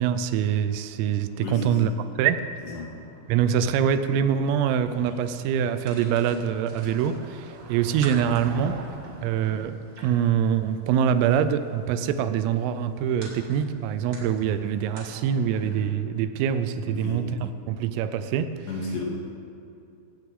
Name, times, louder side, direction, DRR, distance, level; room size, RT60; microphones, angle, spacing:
voice 1, 0.0-1.9 2.2-2.5 3.3-8.8 9.2-9.8 10.0-17.2 17.7-18.6, right 8 dB, 90° right, 11 dB, 3.4 m, -24 dB
Motor vehicle (road), 0.7-11.0, right 4 dB, 65° right, 2.8 m, -46 dB
voice 2, 1.4-1.8 2.7-2.9 16.9-17.2 18.7-19.0, left 3 dB, 65° left, -3 dB, 4.4 m, -32 dB
sound 1, 4.9-15.9, right 2 dB, 35° right, 1.9 m, -47 dB
17.0 x 16.5 x 3.8 m, 2.6 s
omnidirectional pair, 5.8 m